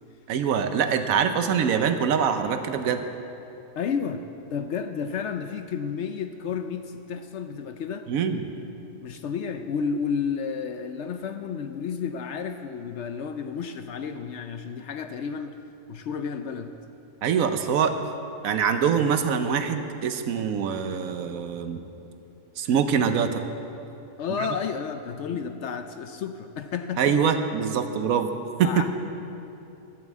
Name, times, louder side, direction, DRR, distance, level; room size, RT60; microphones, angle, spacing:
voice 1, 0.3-3.0 8.1-8.4 17.2-18.0 18.4-21.8 22.6-23.4 27.0-28.3 28.6-28.9, right 7 dB, 75° right, 8 dB, 1.1 m, -24 dB
voice 2, 3.8-8.1 9.0-15.6 15.9-16.8 24.2-27.2 28.6-28.9, left 6 dB, 65° left, 8 dB, 0.7 m, -31 dB
12.0 x 7.5 x 7.3 m, 2.9 s
omnidirectional pair, 1.5 m